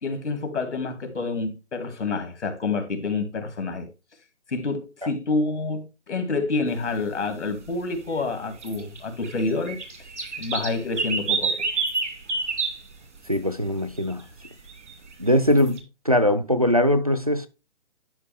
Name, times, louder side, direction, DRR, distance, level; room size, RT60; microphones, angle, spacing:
voice 1, 0.0-3.9 4.5-9.8 10.4-11.6, left 3 dB, 80° left, 2.4 m, -28 dB
sound 1, 8.5-12.8 13.3-13.4 14.0-14.1 14.4-15.8, right 4 dB, 85° right, 2.4 m, -28 dB
voice 2, 13.3-14.2 15.2-15.8 16.1-17.5, left 1 dB, 35° right, 0.4 m, -21 dB
11.0 x 5.2 x 3.4 m
hypercardioid pair, 175°, 34 cm